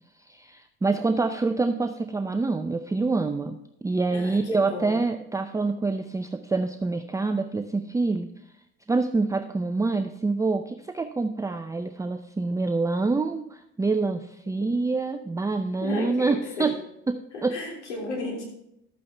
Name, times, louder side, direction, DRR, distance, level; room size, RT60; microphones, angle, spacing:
voice 1, 0.3-8.3 8.9-16.7 17.1-17.5, right 3 dB, 10° right, 8 dB, 0.5 m, -26 dB
voice 2, 4.1-5.2 14.6-14.7 15.8-16.7 17.3-18.4, left 2 dB, 85° left, -1 dB, 3.3 m, -34 dB
12.0 x 8.6 x 3.4 m, 0.82 s
hypercardioid pair, 70°, 34 cm